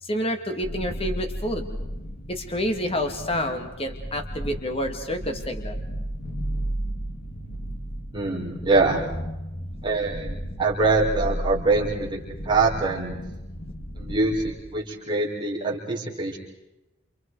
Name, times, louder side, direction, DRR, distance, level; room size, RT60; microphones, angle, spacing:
voice 1, 0.0-1.8 2.3-5.8, equal, 30° left, 5 dB, 2.2 m, -28 dB
sound 1, 0.6-14.6, equal, 50° left, 3.2 m, -34 dB
voice 2, 8.1-9.1 9.8-12.2 12.4-13.2 14.0-16.4, right 3 dB, 25° right, -3 dB, 4.9 m, -24 dB
29.0 x 29.0 x 4.8 m, 0.97 s
head